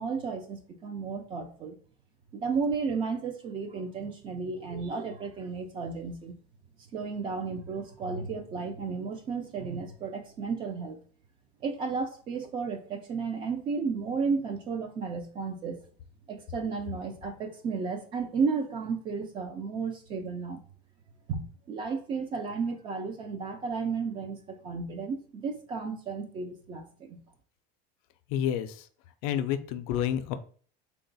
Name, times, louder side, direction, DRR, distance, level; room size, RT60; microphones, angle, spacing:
voice 1, 0.0-1.8 2.3-6.3 6.9-11.0 11.6-15.8 16.3-20.6 21.3-27.2, right 5 dB, 25° right, 7 dB, 0.3 m, -33 dB
voice 2, 28.3-28.9 29.2-30.4, left 10 dB, 60° left, 11 dB, 0.4 m, -29 dB
3.7 x 2.3 x 3.9 m, 0.43 s
cardioid pair, 170°, 21 cm